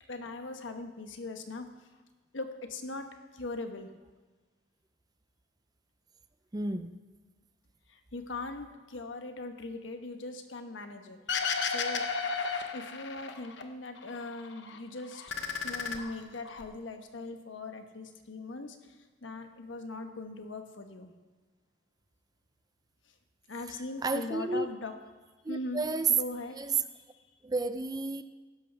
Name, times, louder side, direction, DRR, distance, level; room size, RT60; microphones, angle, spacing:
voice 1, 0.1-1.7 2.3-3.9 7.9-12.1 12.7-15.2 15.6-21.1 23.5-24.9 25.5-25.8 26.2-27.2, left 2 dB, 85° left, 1.1 m, -40 dB
voice 2, 6.5-7.0 24.0-24.7 25.4-26.1 26.5-26.8 27.4-28.2, right 4 dB, 20° right, 0.5 m, -31 dB
sound 1, 11.3-13.6 14.0-14.8 15.1-16.6, left 5 dB, 70° left, 1.0 m, -33 dB
15.0 x 11.5 x 3.4 m
head